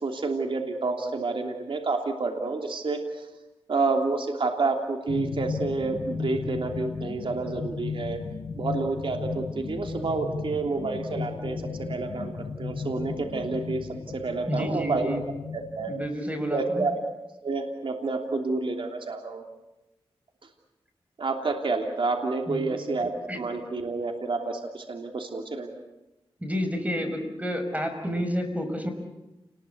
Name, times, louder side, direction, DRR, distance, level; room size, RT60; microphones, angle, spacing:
voice 1, 0.0-3.3 3.7-8.2 8.6-12.3 12.6-15.1 15.5-15.9 16.5-16.9 17.4-19.4 21.2-25.7, right 3 dB, 65° right, 3 dB, 3.0 m, -29 dB
sound 1, 5.1-16.1, left 5 dB, 70° left, 1.8 m, -35 dB
voice 2, 14.5-15.2 15.9-16.8 22.5-22.8 23.3-23.4 26.4-28.9, equal, 15° right, 6 dB, 5.9 m, -30 dB
29.0 x 20.5 x 8.5 m, 1.0 s
cardioid pair, 70°, 10 cm